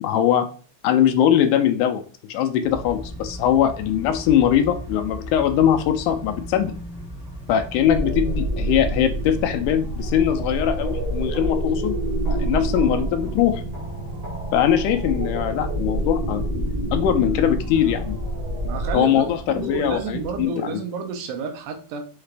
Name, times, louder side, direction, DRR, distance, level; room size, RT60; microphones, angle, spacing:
voice 1, 0.0-0.5 0.8-2.0 2.3-6.7 7.5-12.0 12.3-13.6 14.5-16.4 16.9-18.2 18.9-20.8, left 10 dB, 80° left, 7 dB, 2.0 m, -21 dB
sound 1, 2.6-20.4, equal, 5° right, 0.4 m, -38 dB
sound 2, 7.8-18.9, right 1 dB, 65° right, 0.9 m, -27 dB
voice 2, 18.6-22.0, right 5 dB, 85° right, 5 dB, 2.3 m, -30 dB
5.7 x 2.4 x 3.2 m, 0.40 s
omnidirectional pair, 3.7 m